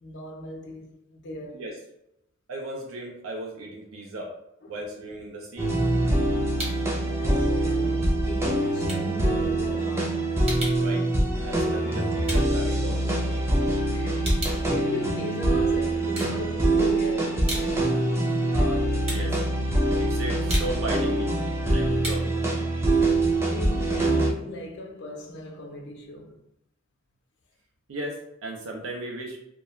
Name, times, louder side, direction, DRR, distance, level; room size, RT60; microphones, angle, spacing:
voice 1, 0.0-1.6 6.9-10.3 13.9-17.8 18.1-18.5 23.0-26.4, left 1 dB, 60° left, 0.5 m, -37 dB
voice 2, 2.5-4.3 4.7-5.7 10.8-11.1 11.4-13.5 18.5-19.4 20.0-21.3 21.6-22.3 27.9-29.4, right 1 dB, 75° right, 0.5 m, -36 dB
sound 1, 5.6-24.3, right 1 dB, 15° right, 0.4 m, -24 dB
sound 2, 5.8-7.0 7.3-13.5 13.8-15.6 16.0-16.9 17.2-23.9, right 1 dB, 30° right, 0.9 m, -38 dB
2.3 x 2.1 x 3.0 m
head